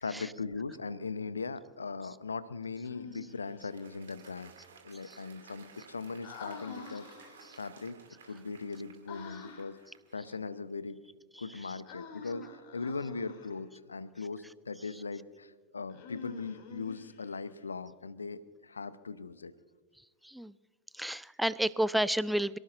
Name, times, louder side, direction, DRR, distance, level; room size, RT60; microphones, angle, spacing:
voice 1, 0.0-4.5 4.8-7.1 7.6-9.8 10.1-11.0 11.4-19.5, left 4 dB, 75° left, 15 dB, 0.8 m, -39 dB
Human voice, 2.8-3.7 6.2-7.6 9.1-9.9 11.8-13.6 15.9-17.5, left 5 dB, 45° left, 2.9 m, -47 dB
Applause, 2.9-10.5, right 6 dB, 65° right, 2.5 m, -57 dB
voice 2, 20.9-22.6, right 1 dB, ahead, 19 dB, 0.4 m, -30 dB
26.5 x 18.0 x 2.6 m, 1.4 s
figure-of-eight pair, 90°, 0 cm